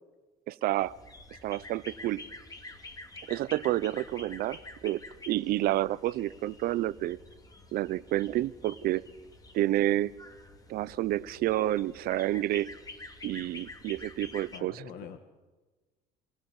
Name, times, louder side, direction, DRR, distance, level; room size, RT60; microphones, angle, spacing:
voice 1, 0.5-1.0 1.4-2.2 3.3-5.0 5.3-7.2 7.7-9.0 9.5-10.1 10.7-12.7 13.2-14.9, right 15 dB, 65° right, 19 dB, 0.8 m, -29 dB
sound 1, 0.8-14.6, left 2 dB, 20° left, 2.3 m, -48 dB
voice 2, 14.5-15.2, left 8 dB, 65° left, 8 dB, 1.6 m, -44 dB
26.0 x 17.0 x 7.3 m, 1.3 s
cardioid pair, 115°, 17 cm